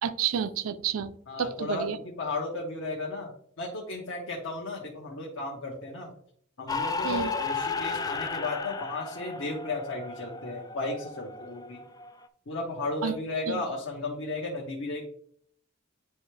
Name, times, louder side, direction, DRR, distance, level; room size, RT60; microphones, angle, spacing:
voice 1, 0.0-1.1 1.4-2.0 7.0-7.3 13.0-13.1 13.5-13.6, right 8 dB, 85° right, 10 dB, 0.4 m, -29 dB
voice 2, 1.3-6.1 6.6-11.8 12.5-15.0, left 2 dB, 70° left, -2 dB, 1.1 m, -34 dB
sound 1, 6.7-12.3, left 4 dB, 20° left, 0.4 m, -34 dB
9.4 x 3.4 x 3.3 m, 0.63 s
head